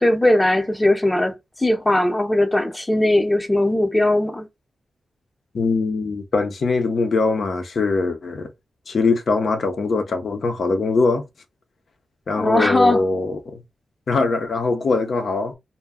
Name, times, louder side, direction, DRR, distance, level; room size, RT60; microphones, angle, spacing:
voice 1, 0.0-4.5 12.3-13.0, left 1 dB, 15° left, 0.7 m, -19 dB
voice 2, 5.5-8.5 8.9-11.2 12.3-13.6 14.1-15.6, left 3 dB, 65° left, 0.6 m, -22 dB
2.2 x 2.2 x 3.5 m
cardioid pair, 50°, 0 cm